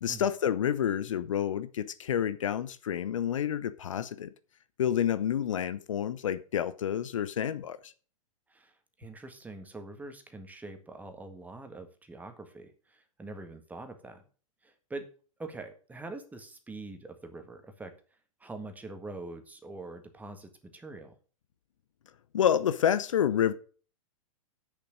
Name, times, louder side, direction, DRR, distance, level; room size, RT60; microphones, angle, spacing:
voice 1, 0.0-4.3 4.8-7.9 22.3-23.5, left 9 dB, 65° left, 0.8 m, -29 dB
voice 2, 9.0-14.2 14.6-15.1 15.4-17.9 18.4-21.2, right 2 dB, 10° right, 1.7 m, -44 dB
8.2 x 6.9 x 6.3 m
figure-of-eight pair, 105°, 18 cm